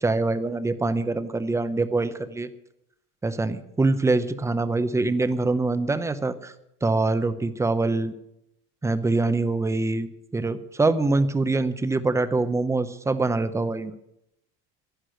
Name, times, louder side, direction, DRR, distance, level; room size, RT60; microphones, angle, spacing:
voice 1, 0.0-2.5 3.2-6.5 6.8-8.1 8.8-13.9, right 3 dB, 5° right, 12 dB, 0.7 m, -24 dB
11.5 x 11.0 x 7.7 m, 0.81 s
cardioid pair, 145°, 43 cm